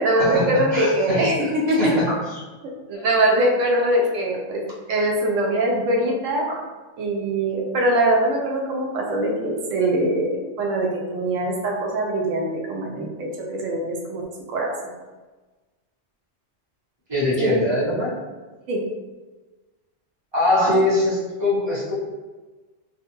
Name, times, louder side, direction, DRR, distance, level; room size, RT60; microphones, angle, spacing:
voice 1, 0.0-2.0 2.6-4.6 4.9-6.6 7.0-14.9 17.4-17.6 18.7-18.8 20.5-20.7, right 1 dB, 90° right, 0 dB, 0.9 m, -22 dB
voice 2, 0.7-1.3 1.7-2.4 2.9-3.1 17.1-18.1 20.3-21.9, left 2 dB, 25° right, -9 dB, 0.9 m, -23 dB
2.4 x 2.3 x 2.9 m, 1.3 s
omnidirectional pair, 1.3 m